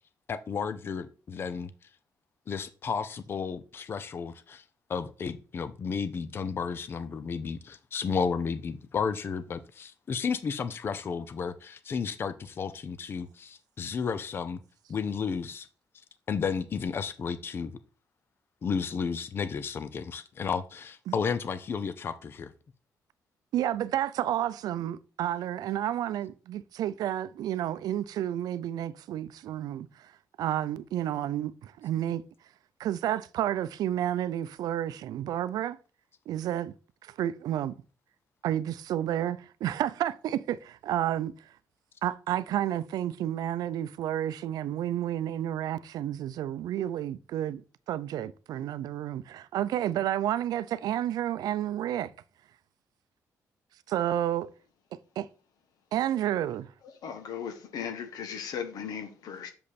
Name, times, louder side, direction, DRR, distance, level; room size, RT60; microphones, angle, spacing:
voice 1, 0.3-1.7 2.5-4.6 4.9-14.6 14.9-15.7 16.3-17.8 18.6-22.5, left 6 dB, 35° left, 0.6 m, -32 dB
voice 2, 23.5-30.1 30.4-32.2 32.8-35.8 36.3-36.7 37.0-37.8 38.4-41.3 42.0-47.6 47.9-52.1 53.9-54.5 55.2-55.3 55.9-56.7, right 11 dB, 80° right, 0.5 m, -30 dB
voice 3, 57.0-59.5, left 7 dB, 75° left, 1.6 m, -37 dB
6.9 x 5.3 x 4.1 m
cardioid pair, 155°, 7 cm